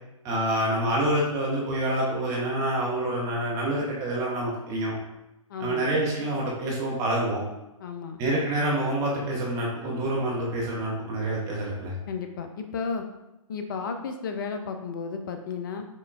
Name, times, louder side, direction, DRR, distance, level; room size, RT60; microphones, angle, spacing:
voice 1, 0.2-5.0 5.6-7.4 8.2-11.9, right 1 dB, 20° right, -4 dB, 0.7 m, -27 dB
voice 2, 5.5-5.9 7.8-8.2 12.1-13.1 13.5-15.9, left 5 dB, 40° left, 6 dB, 0.4 m, -33 dB
5.4 x 2.2 x 2.4 m, 0.93 s
figure-of-eight pair, 120°, 18 cm